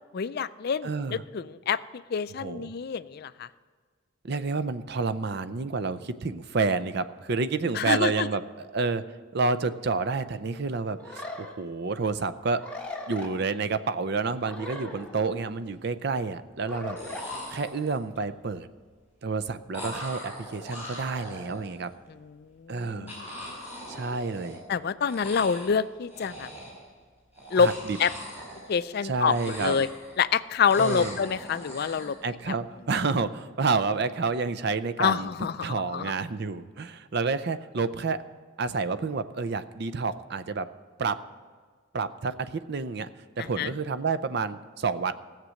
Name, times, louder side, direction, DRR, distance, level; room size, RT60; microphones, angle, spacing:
voice 1, 0.1-1.8 2.1-3.5 7.7-8.3 22.4-23.3 24.7-26.5 27.5-27.7 28.0-28.1 28.7-29.9 30.2-32.2 35.0-36.1 43.6-43.7, left 6 dB, 50° left, 15 dB, 0.4 m, -27 dB
voice 2, 0.8-1.2 2.4-2.7 4.2-9.0 9.3-12.6 13.1-18.7 19.2-21.9 22.7-23.1 23.9-24.6 27.6-28.0 29.0-29.8 30.8-31.2 32.2-35.3 35.6-38.2 38.6-40.7 41.0-41.2 41.9-43.1 43.4-45.1, right 4 dB, 50° right, 12 dB, 0.5 m, -29 dB
sound 1, 11.0-11.5 12.6-13.3 14.4-15.5 16.7-17.2, left 2 dB, 5° left, 1.3 m, -39 dB
sound 2, 14.7-14.8 15.1-15.7 16.7-16.8 17.0-18.2 19.7-21.9 23.1-24.8 25.0-25.8 26.1-26.9 27.3-29.0 29.2-30.3 30.6-32.2, left 1 dB, 10° right, 4.1 m, -41 dB
16.0 x 7.5 x 6.4 m, 1.5 s
head